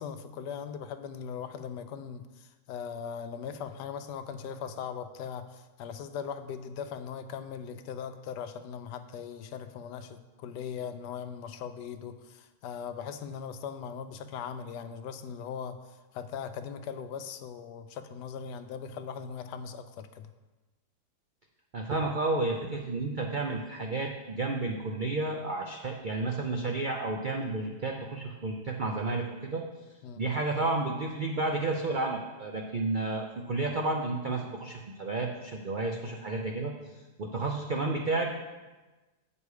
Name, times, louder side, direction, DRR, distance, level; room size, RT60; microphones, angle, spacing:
voice 1, 0.0-20.3 30.0-30.2, left 7 dB, 85° left, 10 dB, 1.2 m, -39 dB
voice 2, 21.7-29.6 30.2-36.7 37.2-38.3, right 2 dB, 85° right, 1 dB, 0.4 m, -31 dB
8.2 x 5.3 x 4.8 m, 1.2 s
omnidirectional pair, 1.8 m